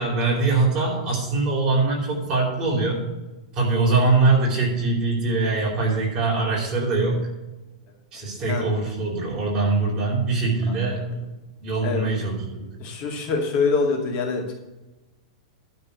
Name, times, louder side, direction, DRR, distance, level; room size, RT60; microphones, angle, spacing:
voice 1, 0.0-3.0 3.5-7.2 8.1-11.1 11.6-12.7, right 3 dB, 25° right, -4 dB, 4.2 m, -22 dB
voice 2, 8.2-8.6 11.8-12.1 12.8-14.5, left 4 dB, 30° left, 1 dB, 2.3 m, -25 dB
12.0 x 4.4 x 8.2 m, 1.1 s
supercardioid pair, 165°, 3 cm